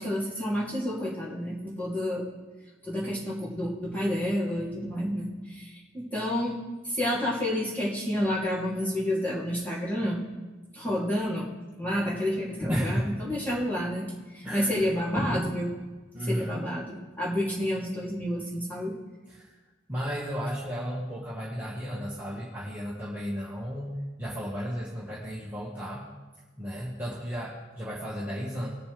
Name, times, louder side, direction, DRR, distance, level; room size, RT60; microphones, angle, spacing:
voice 1, 0.0-2.2 2.8-6.6 6.8-10.2 10.7-11.5 11.8-15.7 16.2-19.0, equal, 10° left, -7 dB, 3.0 m, -29 dB
voice 2, 12.7-13.2 14.4-14.7 16.1-16.6 19.3-19.5 19.9-26.1 26.6-28.7, equal, 10° right, -8 dB, 1.7 m, -34 dB
20.5 x 6.9 x 3.5 m, 1.2 s
head